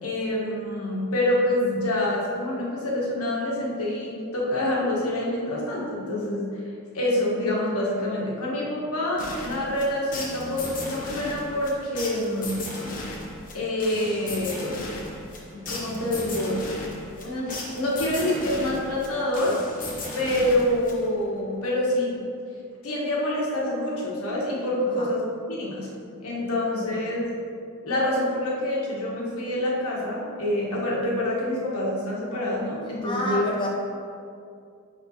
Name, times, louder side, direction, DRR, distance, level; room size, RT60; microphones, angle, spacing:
voice 1, 0.0-6.6 6.9-12.5 13.5-14.7 15.5-16.6 17.2-19.6 20.1-22.2 22.8-25.9 26.2-27.2 27.8-33.5, left 1 dB, 80° left, -4 dB, 1.3 m, -26 dB
sound 1, 9.2-21.3, left 1 dB, 40° left, 1.1 m, -36 dB
voice 2, 33.0-33.7, left 1 dB, 25° left, -3 dB, 0.6 m, -29 dB
9.3 x 3.6 x 2.9 m, 2.4 s
head